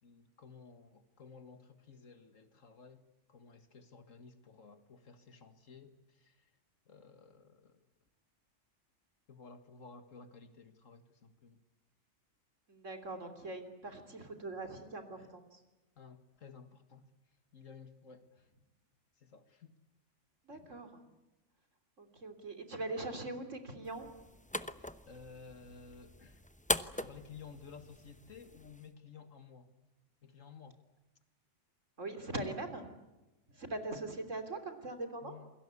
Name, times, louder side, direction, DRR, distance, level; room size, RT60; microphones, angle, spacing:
voice 1, 0.0-6.5 6.9-7.8 9.3-11.6 15.2-15.3 16.0-17.1 17.5-18.5 19.2-19.7 20.6-20.7 25.1-26.4 27.0-29.7 30.2-30.8 32.0-32.3 35.2-35.5, left 5 dB, 80° left, 9 dB, 2.2 m, -54 dB
voice 2, 12.7-15.6 20.5-21.0 22.0-24.1 32.0-32.9 33.5-35.4, right 2 dB, 70° right, 7 dB, 3.7 m, -42 dB
sound 1, 23.8-28.9, left 1 dB, 10° left, 0.7 m, -41 dB
28.5 x 22.5 x 8.4 m, 1.0 s
omnidirectional pair, 1.3 m